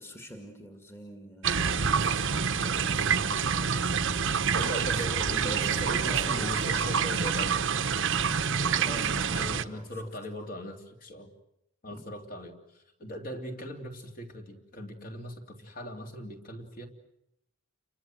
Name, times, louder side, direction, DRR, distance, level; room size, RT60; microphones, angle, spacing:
voice 1, 0.0-6.5 8.8-10.0 11.9-12.1, equal, 10° left, 4 dB, 2.2 m, -47 dB
sound 1, 1.4-9.6, right 6 dB, 55° right, 1.0 m, -27 dB
voice 2, 4.5-7.6 9.3-11.3 11.8-16.9, equal, 40° left, 3 dB, 3.1 m, -39 dB
30.0 x 24.0 x 7.8 m, 0.82 s
head